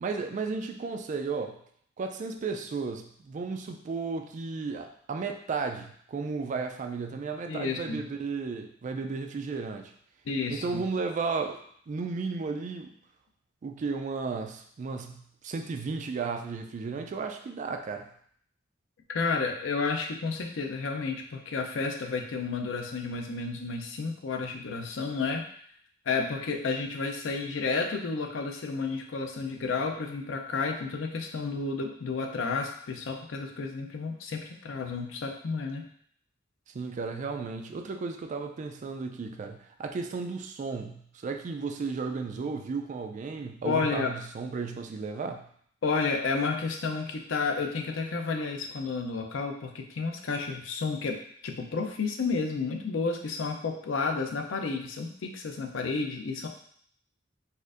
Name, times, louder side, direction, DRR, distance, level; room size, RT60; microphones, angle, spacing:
voice 1, 0.0-1.6 2.0-9.9 10.5-12.9 13.6-18.1 36.7-45.4, right 4 dB, 40° right, 5 dB, 0.3 m, -34 dB
voice 2, 7.5-8.0 10.3-10.8 19.1-25.4 26.1-35.8 43.6-44.1 45.8-51.2 51.4-56.5, left 4 dB, 80° left, 3 dB, 0.5 m, -31 dB
4.1 x 2.5 x 2.5 m, 0.62 s
head